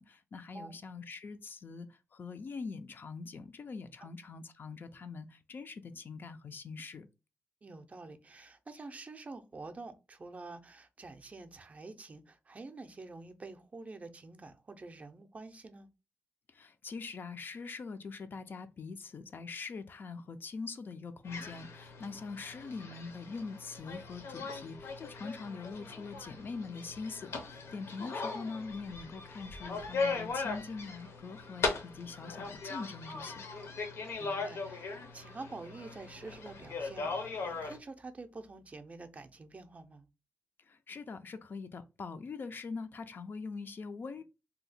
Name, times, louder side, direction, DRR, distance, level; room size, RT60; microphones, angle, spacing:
voice 1, 0.0-7.1 16.5-33.4 40.6-44.2, left 4 dB, 50° left, 0.3 m, -43 dB
voice 2, 7.6-15.9 34.2-40.1, right 3 dB, 30° right, 0.4 m, -48 dB
sound 1, 21.2-37.8, left 4 dB, 75° left, 0.7 m, -39 dB
2.7 x 2.1 x 4.0 m
wide cardioid pair, 120°, 5 cm